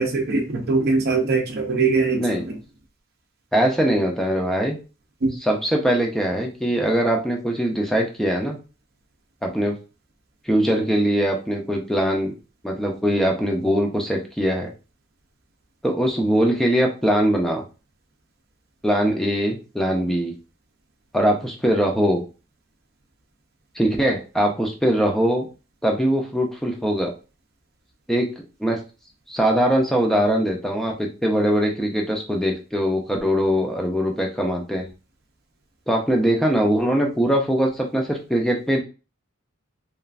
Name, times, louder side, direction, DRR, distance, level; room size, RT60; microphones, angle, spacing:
voice 1, 0.0-2.5 5.2-5.3, right 4 dB, 50° right, 2 dB, 0.5 m, -22 dB
voice 2, 3.5-4.8 5.4-8.6 9.4-9.8 10.5-12.3 12.6-14.7 15.8-17.6 18.8-20.3 21.1-22.2 23.8-25.5 25.8-27.1 28.1-28.8 29.3-34.9 35.9-38.8, equal, ahead, 0 dB, 0.5 m, -21 dB
3.1 x 2.4 x 2.4 m, 0.33 s
head